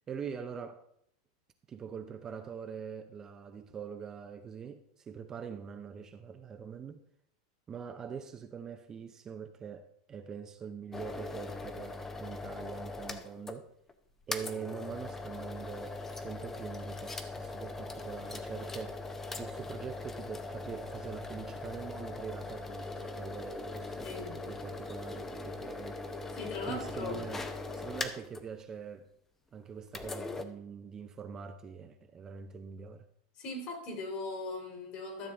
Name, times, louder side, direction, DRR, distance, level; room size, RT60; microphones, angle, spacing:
voice 1, 0.1-0.9 1.7-7.0 7.7-13.7 14.3-19.1 19.4-24.1 24.5-26.0 26.7-27.4 27.7-29.1 29.5-33.1, right 7 dB, 20° right, 0.6 m, -43 dB
sound 1, 10.9-13.6 13.9-14.0 14.3-28.4 29.9-30.4, left 3 dB, 15° left, 0.7 m, -40 dB
voice 2, 24.0-24.4 26.3-27.3 33.4-35.3, left 3 dB, 45° left, 2.7 m, -39 dB
12.5 x 6.7 x 3.5 m
supercardioid pair, 135°, 2 cm